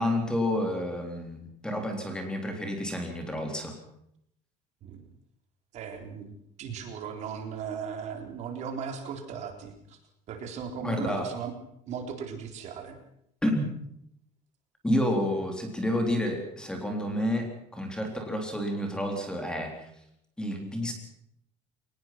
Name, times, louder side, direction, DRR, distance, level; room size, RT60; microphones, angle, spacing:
voice 1, 0.0-3.8 10.8-11.3 13.4-13.7 14.8-19.9 20.4-20.9, left 1 dB, 5° left, 3 dB, 3.7 m, -30 dB
voice 2, 5.7-6.3 6.6-10.0 10.3-11.5 11.9-13.0, right 6 dB, 50° right, 5 dB, 3.9 m, -37 dB
23.0 x 20.0 x 6.0 m, 0.74 s
cardioid pair, 160°, 15 cm